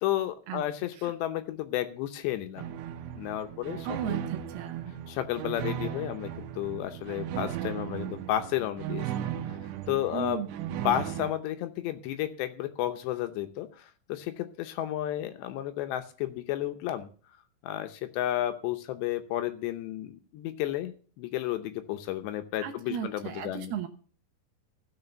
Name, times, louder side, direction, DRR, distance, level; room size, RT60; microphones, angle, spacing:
voice 1, 0.0-2.7 3.2-4.2 5.1-9.3 9.9-10.4 10.8-17.1 17.6-23.7, left 13 dB, 75° left, 8 dB, 2.8 m, -32 dB
sound 1, 2.6-11.3, right 11 dB, 90° right, 3.3 m, -36 dB
voice 2, 3.8-5.0 10.1-10.5 22.6-23.9, right 8 dB, 75° right, 6 dB, 2.6 m, -35 dB
14.5 x 6.7 x 6.8 m, 0.42 s
omnidirectional pair, 5.4 m